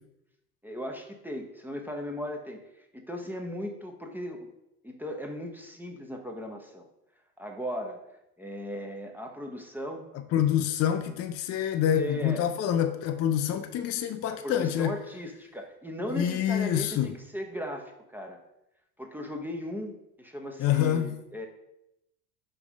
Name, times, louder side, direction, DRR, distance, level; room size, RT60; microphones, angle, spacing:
voice 1, 0.6-4.5 4.8-6.9 7.4-8.0 8.4-10.0 12.0-12.4 14.3-18.4 19.0-21.5, equal, 5° right, 0.7 m, -37 dB
voice 2, 10.3-15.0 16.1-17.1 20.6-21.1, left 10 dB, 35° left, 0.5 m, -26 dB
5.3 x 3.5 x 5.0 m
hypercardioid pair, 85°, 46 cm